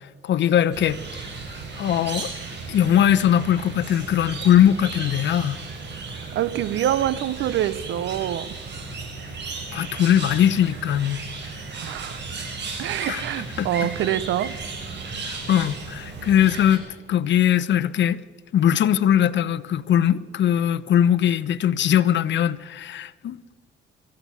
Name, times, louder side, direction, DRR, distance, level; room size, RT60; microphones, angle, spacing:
voice 1, 0.2-1.0 1.8-2.3 2.7-5.6 9.7-11.2 13.1-13.2 13.6-13.7 15.2-18.2 18.5-23.4, left 10 dB, 65° left, 1.0 m, -20 dB
sound 1, 0.7-16.8, right 4 dB, 60° right, 6.5 m, -35 dB
voice 2, 6.1-8.6 11.8-12.2 12.8-14.6, right 11 dB, 75° right, 0.9 m, -26 dB
24.5 x 15.0 x 7.2 m
cardioid pair, 90°, 20 cm